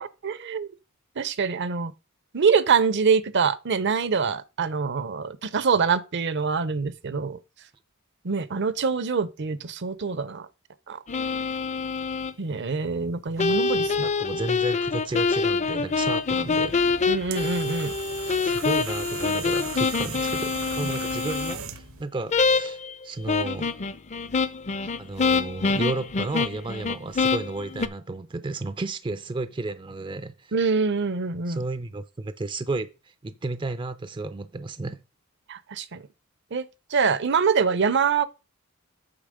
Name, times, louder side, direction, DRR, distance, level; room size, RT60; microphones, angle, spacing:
voice 1, 0.2-0.7 1.2-1.9 2.3-7.4 8.2-10.5 10.9-11.0 12.4-14.1 17.1-17.9 30.5-31.6 35.5-36.0 36.5-36.6 36.9-38.2, right 5 dB, 55° right, 0.7 m, -24 dB
sound 1, 11.1-12.3 13.4-21.6 22.3-22.9 23.3-27.9, left 4 dB, 35° left, 0.5 m, -25 dB
voice 2, 14.0-16.7 18.4-22.8 23.0-23.7 25.0-30.5 31.5-35.0, right 2 dB, 25° right, 0.4 m, -33 dB
sound 2, 16.6-22.0, right 6 dB, 75° right, 1.0 m, -38 dB
8.8 x 5.9 x 5.0 m
head